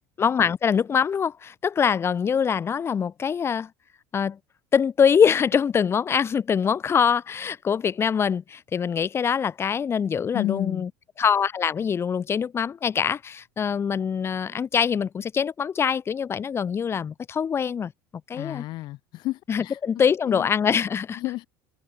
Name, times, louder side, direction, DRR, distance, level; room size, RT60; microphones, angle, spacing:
voice 1, 0.2-3.7 4.1-4.4 4.7-10.9 11.2-17.9 18.3-18.6 19.5-21.2, left 7 dB, 30° left, 6.6 m, -24 dB
voice 2, 10.3-10.9 18.3-19.8 20.3-20.5 21.2-21.4, left 17 dB, 60° left, 3.8 m, -31 dB
supercardioid pair, 115°, 9 cm